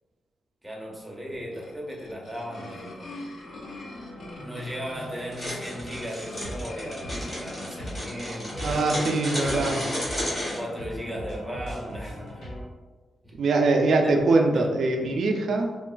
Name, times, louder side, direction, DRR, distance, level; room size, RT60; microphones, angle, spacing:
voice 1, 0.6-3.2 4.3-8.8 9.4-9.8 10.5-12.4 13.2-13.3 14.0-14.2 14.5-14.7, equal, 5° right, -4 dB, 0.5 m, -37 dB
sound 1, 1.3-10.6, left 1 dB, 60° left, 0.5 m, -44 dB
sound 2, 3.6-12.6, equal, 85° left, 0.8 m, -40 dB
sound 3, 5.3-10.6, equal, 20° left, 0.9 m, -32 dB
voice 2, 8.6-9.8 13.4-15.7, right 3 dB, 60° right, 3 dB, 0.3 m, -22 dB
3.0 x 2.3 x 2.2 m, 1.3 s
wide cardioid pair, 165°, 0 cm